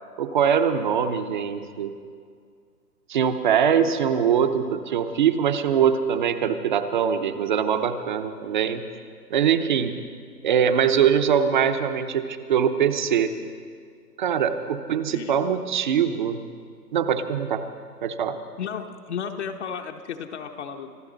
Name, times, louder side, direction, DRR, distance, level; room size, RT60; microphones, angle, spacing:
voice 1, 0.2-1.9 3.1-8.9 9.3-10.0 10.4-13.3 14.2-16.4 16.9-17.6 18.0-18.4, right 8 dB, 30° right, 10 dB, 0.7 m, -22 dB
voice 2, 18.6-21.0, left 7 dB, 45° left, 4 dB, 0.9 m, -33 dB
25.5 x 12.5 x 3.9 m, 2.2 s
hypercardioid pair, 145°, 48 cm